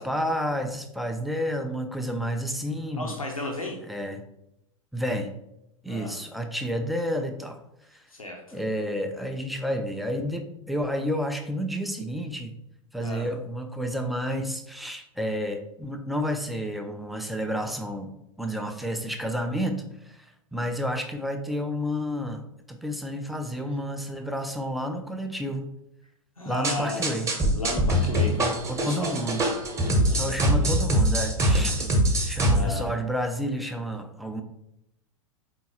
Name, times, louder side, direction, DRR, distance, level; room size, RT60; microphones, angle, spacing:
voice 1, 0.0-3.1 3.9-4.2 4.9-5.3 5.8-7.6 7.9-8.0 8.5-12.5 12.9-18.1 18.4-19.8 20.0-25.7 26.4-27.3 28.4-29.4 30.2-31.9 32.3-34.4, equal, ahead, 5 dB, 0.3 m, -30 dB
voice 2, 2.9-3.8 5.9-6.2 8.1-8.6 13.0-13.3 26.4-30.9 32.4-33.0, left 3 dB, 85° left, 1 dB, 0.7 m, -35 dB
sound 1, 26.6-32.6, right 1 dB, 15° right, 0.9 m, -23 dB
4.4 x 3.7 x 2.8 m, 0.82 s
figure-of-eight pair, 90°, 18 cm